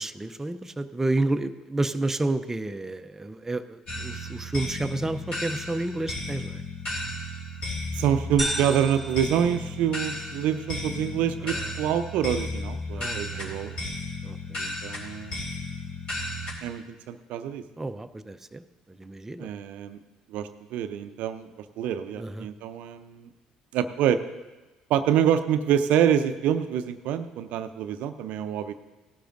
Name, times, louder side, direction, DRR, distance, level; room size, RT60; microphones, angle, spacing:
voice 1, 0.0-6.6 11.4-11.7 13.0-13.5 14.2-14.6 17.8-18.6 18.9-19.5 22.2-22.5, right 2 dB, 15° right, 9 dB, 0.5 m, -30 dB
sound 1, 3.9-16.5, left 1 dB, 45° left, 3.6 m, -34 dB
voice 2, 7.9-13.7 14.6-15.6 16.6-17.6 19.4-20.0 20.3-21.5 21.8-23.3 23.7-24.2 24.9-28.7, right 9 dB, 65° right, 11 dB, 0.5 m, -26 dB
sound 2, 8.4-10.3, equal, 5° left, 3.6 m, -35 dB
17.0 x 11.5 x 2.6 m, 1.1 s
hypercardioid pair, 55°, 3 cm